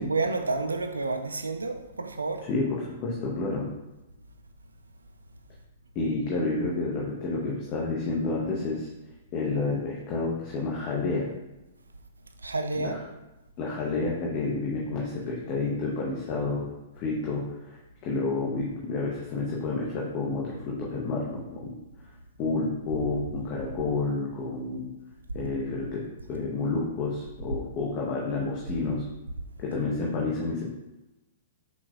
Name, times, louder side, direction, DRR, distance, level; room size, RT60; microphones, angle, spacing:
voice 1, 0.0-2.4 12.4-13.0, right 3 dB, 75° right, 6 dB, 0.3 m, -29 dB
voice 2, 2.4-3.7 5.9-8.9 9.3-11.3 12.8-13.0 13.6-16.7 17.0-21.8 22.4-24.9 25.3-26.0 26.3-29.0 29.6-30.6, left 3 dB, 35° left, -4 dB, 0.7 m, -30 dB
5.7 x 2.2 x 2.3 m, 1.0 s
figure-of-eight pair, 105°, 0 cm